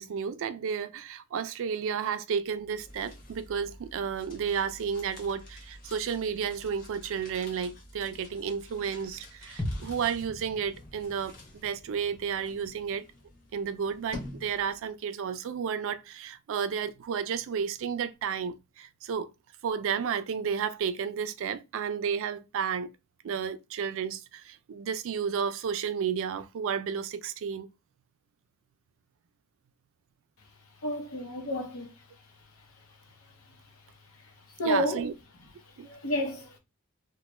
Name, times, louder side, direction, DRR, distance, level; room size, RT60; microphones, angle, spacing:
voice 1, 0.0-11.4 11.6-13.1 13.5-19.3 19.6-22.9 23.2-27.7 34.6-35.1 35.8-35.9, right 7 dB, 65° right, 0.3 m, -32 dB
sound 1, 2.5-15.0, left 1 dB, 45° left, 1.2 m, -49 dB
sound 2, 9.6-13.5 13.8-13.9, left 1 dB, 10° left, 0.5 m, -41 dB
voice 2, 30.8-31.9 34.6-35.0 35.8-36.6, equal, 75° left, 0.8 m, -30 dB
3.1 x 2.1 x 3.0 m
head